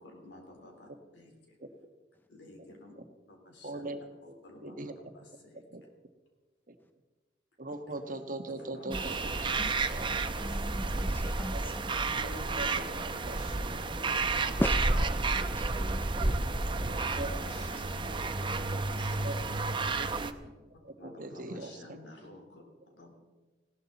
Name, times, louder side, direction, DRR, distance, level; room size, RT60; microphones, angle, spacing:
voice 1, 0.0-1.6 2.3-2.9 3.3-3.9 4.4-4.8 5.1-5.9 7.9-8.0 8.5-10.8 12.1-14.9 16.2-19.2 21.0-22.6 22.9-23.1, left 1 dB, 75° left, 2 dB, 3.8 m, -50 dB
voice 2, 3.6-4.3 4.6-4.9 5.7-5.8 6.7-6.8 7.6-9.5 9.9-10.1 11.5-11.6 12.5-12.8 13.2-13.4 16.9-17.3 17.7-17.8 19.2-19.3 20.0-20.3 20.8-22.0, right 2 dB, 50° right, 6 dB, 1.3 m, -40 dB
sound 1, 8.9-20.3, right 3 dB, 25° right, 0.7 m, -31 dB
voice 3, 10.4-11.7 14.6-15.1 15.3-16.3, left 1 dB, 10° left, 9 dB, 0.4 m, -37 dB
19.5 x 17.0 x 4.1 m, 1.3 s
head